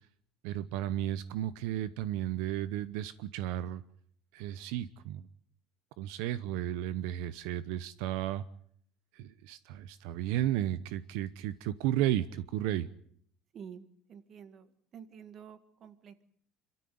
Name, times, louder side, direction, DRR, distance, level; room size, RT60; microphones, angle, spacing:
voice 1, 0.4-3.8 4.3-5.3 6.0-8.4 9.1-12.9, right 12 dB, 80° right, 15 dB, 0.9 m, -33 dB
voice 2, 13.5-16.2, right 7 dB, 40° right, 12 dB, 1.9 m, -50 dB
26.5 x 13.5 x 9.5 m, 0.65 s
cardioid pair, 140°, 0 cm